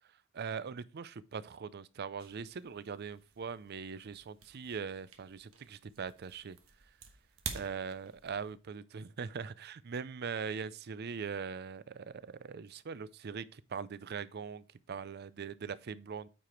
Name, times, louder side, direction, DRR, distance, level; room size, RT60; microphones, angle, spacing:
voice 1, 0.3-6.6 7.5-16.3, right 6 dB, 50° right, 0.5 m, -41 dB
sound 1, 2.2-8.5, right 6 dB, 90° right, 1.3 m, -49 dB
8.9 x 4.9 x 4.4 m
head